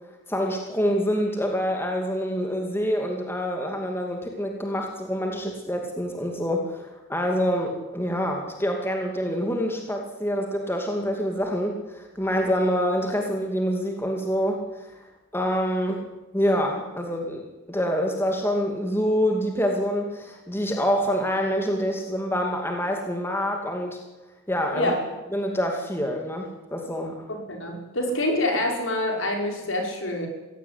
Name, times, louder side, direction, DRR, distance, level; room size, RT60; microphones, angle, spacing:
voice 1, 0.3-14.9 15.3-16.1 16.3-24.0 24.5-25.0 25.3-27.2, equal, 10° left, 2 dB, 2.5 m, -26 dB
voice 2, 27.3-30.3, left 1 dB, 60° left, 2 dB, 5.8 m, -26 dB
23.0 x 17.0 x 9.9 m, 1.1 s
head